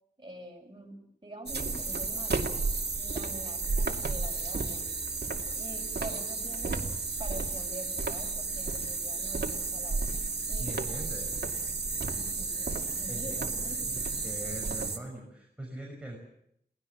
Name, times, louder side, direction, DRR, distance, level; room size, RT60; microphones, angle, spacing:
voice 1, 0.2-2.5 3.0-4.9 5.5-6.9 7.2-10.1 10.5-10.7 12.1-13.9, right 1 dB, 25° right, 2 dB, 6.5 m, -45 dB
sound 1, 1.5-15.0, right 3 dB, 70° right, 2.6 m, -32 dB
voice 2, 10.6-11.5 13.1-16.2, right 1 dB, 5° right, -1 dB, 6.3 m, -42 dB
22.5 x 19.0 x 7.4 m, 0.74 s
wide cardioid pair, 80°, 18 cm